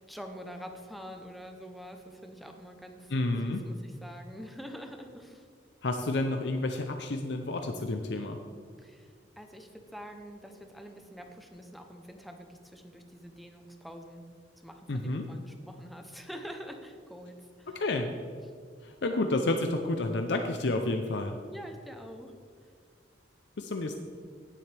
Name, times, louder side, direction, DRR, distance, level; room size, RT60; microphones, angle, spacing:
voice 1, 0.0-5.5 8.8-14.3 14.6-17.7 21.5-22.4, equal, ahead, 4 dB, 0.8 m, -46 dB
voice 2, 3.1-3.6 5.8-8.4 14.9-15.3 17.7-18.1 18.8-21.4 23.6-24.0, left 2 dB, 70° left, 5 dB, 0.6 m, -30 dB
17.0 x 7.6 x 3.4 m, 2.2 s
head